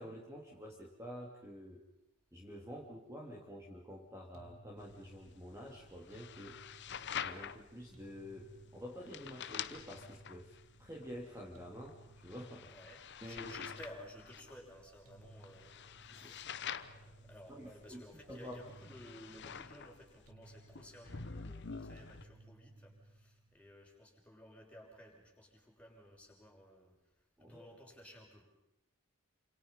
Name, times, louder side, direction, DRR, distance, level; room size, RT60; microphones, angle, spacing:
voice 1, 0.0-1.8 2.3-6.6 7.1-10.5 10.8-12.7 13.2-13.7 16.1-16.4 17.5-18.0 18.3-18.6 27.4-27.7, equal, 15° right, -2 dB, 3.0 m, -49 dB
sound 1, 4.3-23.6, right 2 dB, 75° right, 2.9 m, -60 dB
sound 2, 4.8-22.2, left 7 dB, 55° left, 1.0 m, -48 dB
voice 2, 12.7-27.0 27.4-28.4, equal, 5° left, -1 dB, 5.8 m, -56 dB
28.5 x 27.5 x 5.5 m, 0.87 s
head